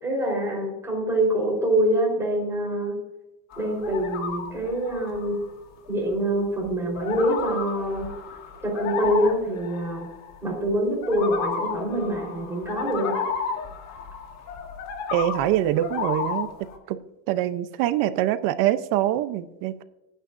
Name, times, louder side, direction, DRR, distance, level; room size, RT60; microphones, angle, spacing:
voice 1, 0.0-3.0 3.6-5.5 5.9-8.1 8.6-10.1 10.4-13.2, right 1 dB, 5° right, -3 dB, 4.1 m, -25 dB
sound 1, 3.5-5.4 5.9-6.1 6.6-10.7 11.0-16.8, left 6 dB, 40° left, 1.6 m, -33 dB
voice 2, 15.1-17.0 17.3-19.8, right 13 dB, 55° right, 12 dB, 0.8 m, -24 dB
25.5 x 9.1 x 2.6 m, 0.98 s
cardioid pair, 170°, 40 cm